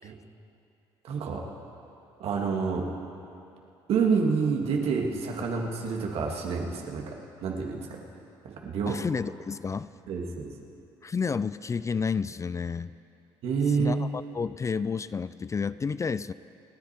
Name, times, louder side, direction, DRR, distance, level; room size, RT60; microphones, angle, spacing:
voice 1, 1.0-1.4 2.2-2.9 3.9-7.1 7.4-8.0 8.4-9.0 10.1-10.5 13.4-14.1, right 5 dB, 70° right, 1 dB, 2.2 m, -28 dB
voice 2, 8.9-9.9 11.0-12.9 13.8-16.3, left 5 dB, 30° left, 16 dB, 0.4 m, -30 dB
28.5 x 10.0 x 4.5 m, 2.7 s
supercardioid pair, 65°, 11 cm